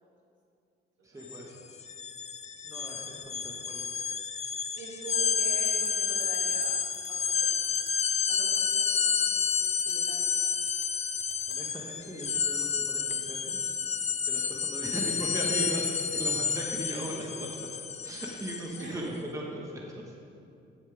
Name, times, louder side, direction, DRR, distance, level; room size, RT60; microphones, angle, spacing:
voice 1, 1.0-1.5 2.6-3.9 11.5-19.8, right 1 dB, 15° right, -2 dB, 1.5 m, -38 dB
sound 1, 1.2-1.4 1.7-18.9, left 6 dB, 35° left, 0.6 m, -30 dB
voice 2, 4.7-6.8 7.1-7.9 8.3-9.4 9.8-10.2 14.4-14.6 18.8-19.0, right 2 dB, 70° right, -4 dB, 2.7 m, -46 dB
sound 2, 5.6-5.9 6.2-6.7 6.9-7.1 7.6-8.0 8.5-8.7 9.5-9.9 10.6-10.9 11.2-11.6, left 10 dB, 75° left, 1.1 m, -50 dB
14.0 x 7.6 x 3.6 m, 2.5 s
cardioid pair, 90°, 20 cm